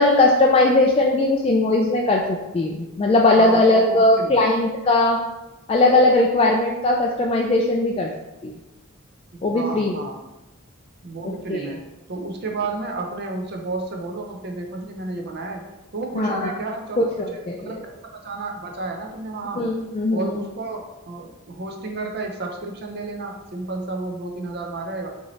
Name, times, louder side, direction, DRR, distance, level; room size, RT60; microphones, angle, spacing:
voice 1, 0.0-5.2 5.7-8.1 8.4-8.5 9.4-9.9 11.2-11.6 16.1-16.5 17.0-17.8 19.6-20.3, left 2 dB, 25° left, 0 dB, 0.3 m, -19 dB
voice 2, 3.4-4.4 9.3-10.2 11.0-15.6 15.9-19.6 20.1-25.1, right 3 dB, 50° right, 2 dB, 0.6 m, -32 dB
5.5 x 2.8 x 3.1 m, 1.0 s
head